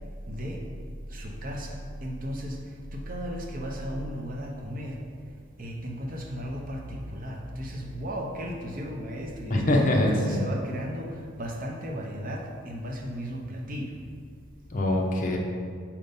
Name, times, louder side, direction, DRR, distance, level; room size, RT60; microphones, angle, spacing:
voice 1, 0.3-0.6 1.1-2.6 2.9-5.0 5.6-9.8 10.1-13.9, equal, 40° right, 0 dB, 0.7 m, -35 dB
voice 2, 9.5-10.4 14.7-15.4, left 1 dB, 40° left, 0 dB, 0.7 m, -23 dB
5.5 x 4.4 x 5.3 m, 2.1 s
head